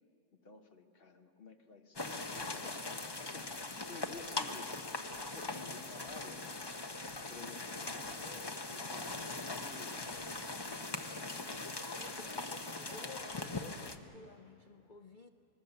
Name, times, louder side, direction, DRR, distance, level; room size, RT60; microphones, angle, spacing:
voice 1, 0.3-6.9 7.3-11.6, left 4 dB, 40° left, 5 dB, 1.3 m, -54 dB
sound 1, 2.0-14.0, left 2 dB, 20° left, 0.7 m, -41 dB
sound 2, 4.1-4.4 5.1-5.3 6.1-6.3 7.1-7.4 8.0-8.3 9.1-9.3 10.1-10.4, right 1 dB, 85° right, 6.5 m, -61 dB
voice 2, 11.6-15.3, left 4 dB, 75° left, 8 dB, 0.4 m, -53 dB
24.5 x 21.0 x 6.9 m, 2.8 s
omnidirectional pair, 1.6 m